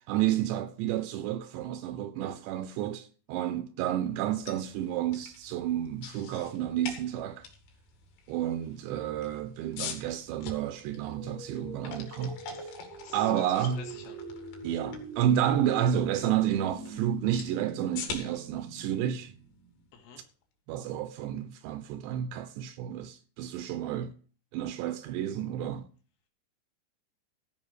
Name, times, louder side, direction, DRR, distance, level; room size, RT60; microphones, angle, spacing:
voice 1, 0.1-7.4 8.3-12.7 13.1-13.8 14.6-19.3 20.7-24.1 24.5-25.9, right 11 dB, 80° right, 2.7 m, -30 dB
sound 1, 4.3-20.2, left 6 dB, 85° left, 4.7 m, -46 dB
sound 2, 10.8-19.7, right 2 dB, 40° right, 1.3 m, -44 dB
voice 2, 12.9-14.2 19.9-20.2, left 7 dB, 65° left, 4.1 m, -48 dB
15.0 x 5.7 x 6.4 m
omnidirectional pair, 5.5 m